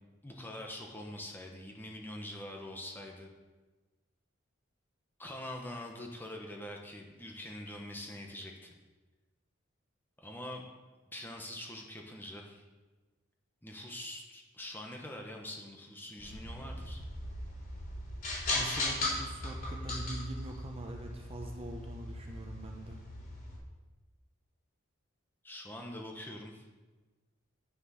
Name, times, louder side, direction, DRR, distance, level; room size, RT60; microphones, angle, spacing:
voice 1, 0.2-3.3 5.2-8.7 10.2-10.6 11.1-12.6 13.6-17.0 25.4-26.6, left 1 dB, 10° left, 1 dB, 1.1 m, -44 dB
sound 1, 16.2-23.6, left 2 dB, 45° left, 3.5 m, -38 dB
voice 2, 18.5-23.0, right 1 dB, 30° right, 2 dB, 0.9 m, -43 dB
9.8 x 6.5 x 5.6 m, 1.2 s
head